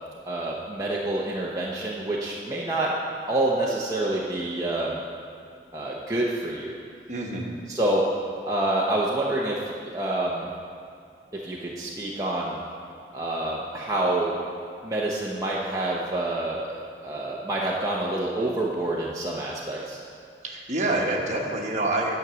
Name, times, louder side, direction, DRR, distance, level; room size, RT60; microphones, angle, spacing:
voice 1, 0.3-2.9 3.3-5.0 5.7-6.8 7.7-8.0 8.4-10.5 11.3-12.6 13.1-14.4 14.8-20.0, right 1 dB, 20° right, -5 dB, 0.7 m, -27 dB
voice 2, 7.1-7.5 20.4-22.1, right 2 dB, 40° right, -1 dB, 1.2 m, -27 dB
9.7 x 6.1 x 6.8 m, 2.4 s
head